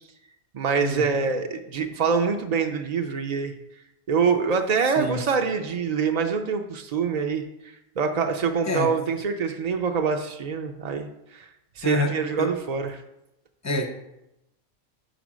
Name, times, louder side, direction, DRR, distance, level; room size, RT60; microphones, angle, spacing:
voice 1, 0.5-3.5 4.1-7.4 8.0-11.4 11.8-13.0, right 5 dB, 60° right, 4 dB, 0.4 m, -25 dB
voice 2, 11.8-12.5 13.6-13.9, left 1 dB, 20° left, 5 dB, 0.5 m, -26 dB
5.1 x 5.0 x 6.1 m, 0.88 s
omnidirectional pair, 1.3 m